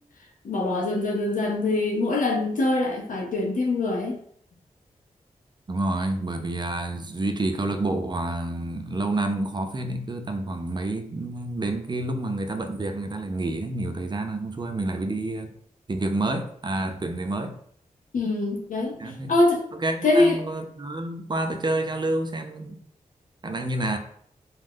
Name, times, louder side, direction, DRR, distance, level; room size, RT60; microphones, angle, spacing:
voice 1, 0.4-4.2 18.1-19.6 20.0-20.4, left 2 dB, 65° left, 0.6 m, -23 dB
voice 2, 5.7-15.5 15.9-17.6 19.0-19.3 19.7-22.8 23.4-24.0, right 2 dB, 30° right, 0.5 m, -28 dB
2.4 x 2.1 x 3.5 m
cardioid pair, 40°, 14 cm